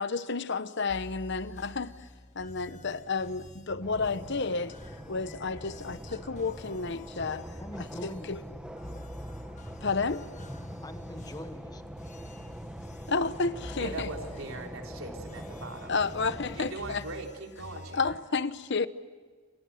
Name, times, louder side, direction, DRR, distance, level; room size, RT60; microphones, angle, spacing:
voice 1, 0.0-1.9 2.3-7.5 7.8-8.4 9.8-10.3 13.1-14.1 15.9-17.0 17.9-18.9, left 4 dB, 55° left, 0.9 m, -31 dB
sound 1, 0.9-18.2, left 1 dB, 35° left, 1.5 m, -48 dB
sound 2, 3.8-16.7, equal, 5° right, 1.4 m, -43 dB
voice 2, 7.6-9.1 10.8-11.8, left 1 dB, 20° left, 1.2 m, -43 dB
voice 3, 13.8-15.9 16.6-18.1, right 2 dB, 70° right, 3.9 m, -40 dB
28.5 x 27.0 x 6.5 m
head